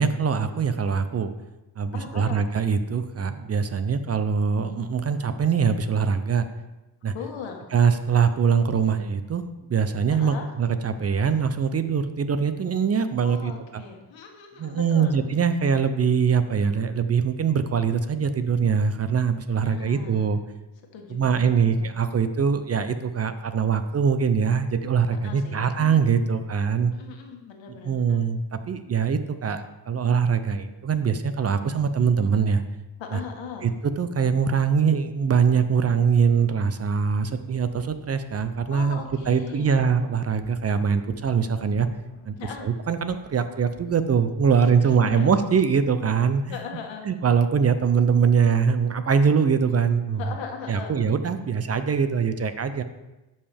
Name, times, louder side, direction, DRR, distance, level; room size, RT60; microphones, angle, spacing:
voice 1, 0.0-1.3 1.8-6.5 7.0-7.1 7.7-13.8 14.6-20.4 21.1-26.9 27.8-32.6 33.1-33.2 33.6-33.7 34.0-39.0 39.3-41.9 42.3-42.4 42.6-46.6 47.1-50.2 50.7-52.8, right 6 dB, 35° right, 10 dB, 0.5 m, -23 dB
voice 2, 1.9-2.4 7.1-7.7 10.1-10.5 13.2-15.2 19.5-20.3 20.9-21.9 25.2-25.7 26.9-28.2 33.0-33.7 38.7-39.9 42.4-42.7 44.5-45.3 46.5-47.1 50.2-51.0, left 6 dB, 85° left, 3 dB, 1.4 m, -38 dB
sound 1, 36.8-45.2, left 2 dB, 60° left, 1.6 m, -51 dB
11.5 x 5.5 x 3.5 m, 1.0 s
cardioid pair, 100°, 44 cm